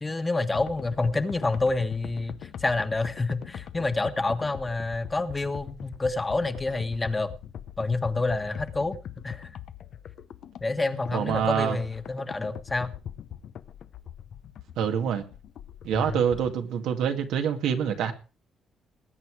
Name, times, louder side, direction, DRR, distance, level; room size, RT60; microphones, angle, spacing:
voice 1, 0.0-7.3 7.8-9.0 9.2-9.5 10.6-12.9 15.9-16.2, left 3 dB, 20° left, 1.5 m, -28 dB
sound 1, 0.5-16.6, left 9 dB, 70° left, 0.9 m, -42 dB
voice 2, 11.1-11.8 14.8-15.2 15.8-18.1, right 8 dB, 85° right, 2.2 m, -26 dB
20.0 x 8.4 x 4.8 m
cardioid pair, 90°, 0 cm